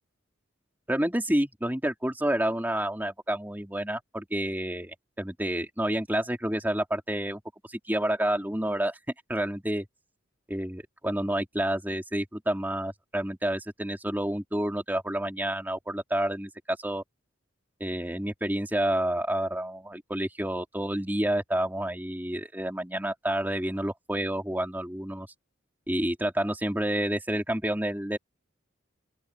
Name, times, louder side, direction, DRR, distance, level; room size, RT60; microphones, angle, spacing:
voice 1, 0.9-7.4 7.7-9.0 9.3-9.8 10.5-17.0 17.8-25.3 25.9-28.2, right 1 dB, 10° right, 3.0 m, -29 dB
open air
head